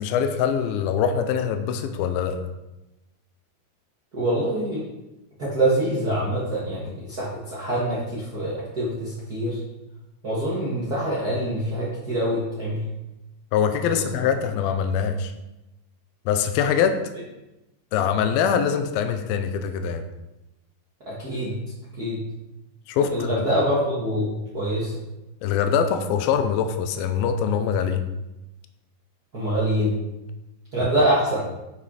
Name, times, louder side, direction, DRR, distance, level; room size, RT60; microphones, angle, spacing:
voice 1, 0.0-2.4 13.5-15.3 16.3-17.0 17.9-20.0 22.9-23.5 25.4-28.1, left 7 dB, 80° left, 7 dB, 2.3 m, -23 dB
voice 2, 4.1-4.8 5.4-9.6 10.2-12.8 13.9-14.3 21.1-21.6 22.0-22.2 23.1-24.9 29.3-29.9 30.7-31.4, right 1 dB, 75° right, -8 dB, 0.8 m, -25 dB
7.4 x 6.2 x 4.9 m, 0.97 s
omnidirectional pair, 4.7 m